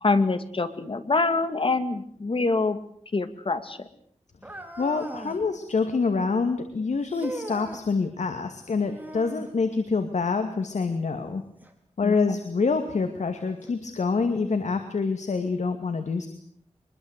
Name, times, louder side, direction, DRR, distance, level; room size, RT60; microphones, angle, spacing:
voice 1, 0.0-2.8 3.1-3.9 12.0-12.2, left 3 dB, 50° left, 11 dB, 2.3 m, -25 dB
sound 1, 4.4-5.5 7.1-7.8 8.8-9.5 11.6-11.7 12.6-12.7 13.6-13.7, right 1 dB, 15° right, 4.1 m, -39 dB
voice 2, 4.8-11.4 12.0-16.3, left 4 dB, 80° left, 7 dB, 2.3 m, -26 dB
24.5 x 22.0 x 8.3 m, 0.63 s
wide cardioid pair, 95°, 12 cm